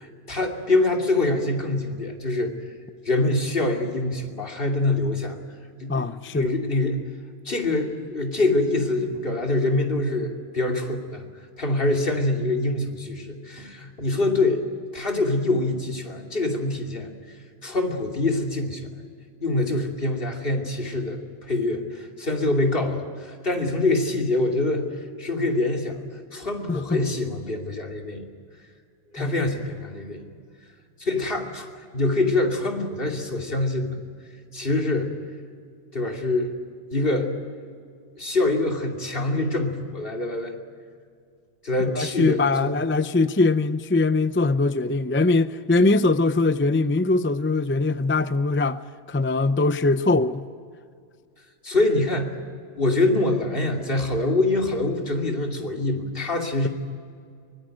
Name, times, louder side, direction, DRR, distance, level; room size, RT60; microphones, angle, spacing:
voice 1, 0.0-2.5 3.0-5.4 5.8-7.1 7.4-11.2 11.6-14.6 14.9-17.4 17.6-19.1 19.4-26.0 26.3-28.3 29.1-30.2 31.0-31.7 31.9-34.0 34.5-35.1 35.9-36.5 36.9-37.3 38.2-40.6 41.6-42.8 51.6-52.3 52.8-56.7, left 2 dB, 50° left, 3.0 m, -25 dB
voice 2, 5.9-6.5 26.7-27.0 29.2-29.4 41.9-48.8 49.1-50.4, left 3 dB, 20° left, 0.3 m, -22 dB
24.0 x 20.0 x 9.1 m
omnidirectional pair, 1.2 m